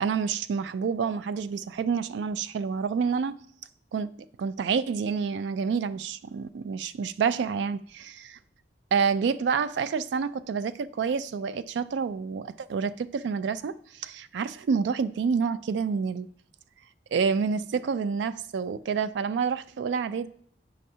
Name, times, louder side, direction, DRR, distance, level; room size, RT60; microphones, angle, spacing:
voice 1, 0.0-3.4 3.9-4.1 4.4-8.4 8.9-16.3 17.1-20.3, right 6 dB, 75° right, 0.3 m, -28 dB
8.4 x 5.4 x 2.7 m
head